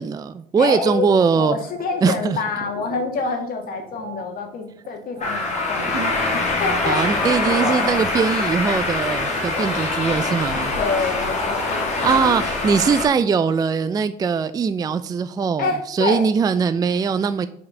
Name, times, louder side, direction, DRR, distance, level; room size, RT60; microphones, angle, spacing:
voice 1, 0.0-1.6 2.0-2.4 6.9-10.7 12.0-17.5, right 6 dB, 20° right, 12 dB, 0.3 m, -21 dB
voice 2, 0.6-7.3 10.5-12.4 15.6-16.3, left 4 dB, 60° left, 4 dB, 1.7 m, -27 dB
sound 1, 1.6-6.4 6.6-6.9, right 6 dB, 65° right, 1.0 m, -38 dB
sound 2, 5.2-13.1, left 3 dB, 40° left, 2.3 m, -23 dB
5.3 x 4.8 x 6.3 m, 0.67 s
cardioid pair, 110°, 17 cm